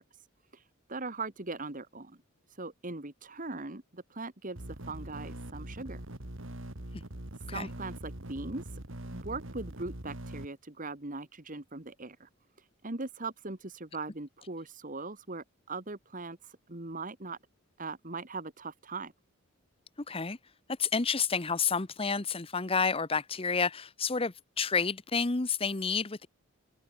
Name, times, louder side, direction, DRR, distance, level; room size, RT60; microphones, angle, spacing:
voice 1, 0.5-2.2 2.5-6.0 7.5-12.3 12.6-17.4 17.8-19.1, right 3 dB, 35° right, 1.8 m, -40 dB
sound 1, 4.6-10.5, right 1 dB, 60° right, 2.6 m, -42 dB
voice 2, 20.1-20.4 20.8-26.3, left 5 dB, 25° left, 0.9 m, -30 dB
head